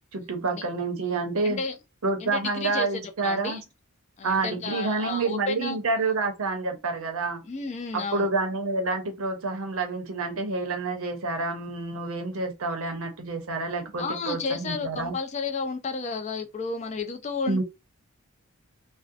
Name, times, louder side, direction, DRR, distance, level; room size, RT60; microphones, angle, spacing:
voice 1, 0.1-1.6 2.0-3.6 4.2-7.4 7.9-15.2 17.5-17.6, right 3 dB, 65° right, 0.7 m, -28 dB
voice 2, 1.4-1.8 2.2-2.9 3.2-3.6 4.2-5.8 7.4-8.3 14.0-17.6, left 4 dB, 30° left, 0.4 m, -32 dB
2.7 x 2.0 x 2.4 m
head